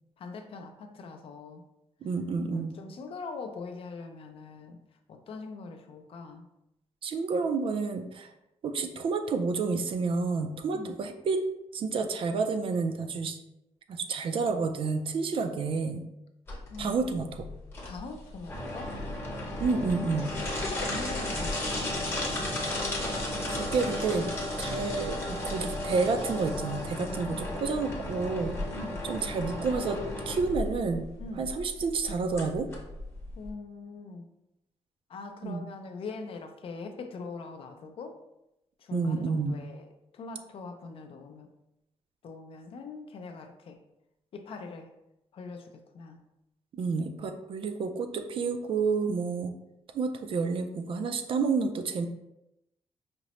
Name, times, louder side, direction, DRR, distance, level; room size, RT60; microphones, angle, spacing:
voice 1, 0.2-1.6 2.5-4.8 5.1-6.5 10.7-10.9 16.7-17.0 17.8-18.9 20.5-22.0 28.7-29.0 31.2-31.5 33.4-34.2 35.1-38.2 38.8-39.9 40.1-41.5 42.2-43.8 44.3-44.9 45.3-46.2, left 4 dB, 60° left, 5 dB, 0.4 m, -42 dB
voice 2, 2.0-2.7 7.0-8.3 8.6-11.4 11.7-13.4 13.9-16.0 16.8-17.5 19.6-20.3 23.5-24.3 24.6-28.6 29.1-30.0 30.3-31.1 31.4-32.7 35.4-35.6 38.9-39.6 46.7-49.5 49.9-52.1, right 4 dB, 55° right, 7 dB, 0.4 m, -29 dB
sound 1, 16.5-33.5, left 1 dB, 20° left, 0.8 m, -34 dB
4.9 x 2.0 x 2.9 m, 0.87 s
wide cardioid pair, 165°, 11 cm